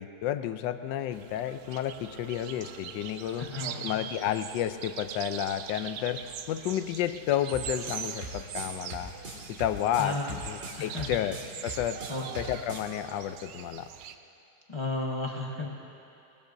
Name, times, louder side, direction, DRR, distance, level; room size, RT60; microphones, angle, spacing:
voice 1, 0.0-3.5 3.8-9.1 9.5-12.0 12.3-13.9, left 11 dB, 85° left, 10 dB, 1.3 m, -31 dB
sound 1, 1.1-14.1, right 8 dB, 70° right, 1.0 m, -42 dB
voice 2, 3.4-3.9 10.0-10.3 10.8-11.1 12.1-12.3 14.7-15.7, left 2 dB, 25° left, -1 dB, 0.7 m, -33 dB
sound 2, 7.5-12.9, right 1 dB, 40° right, 2.3 m, -41 dB
20.5 x 19.5 x 2.6 m, 2.7 s
omnidirectional pair, 1.9 m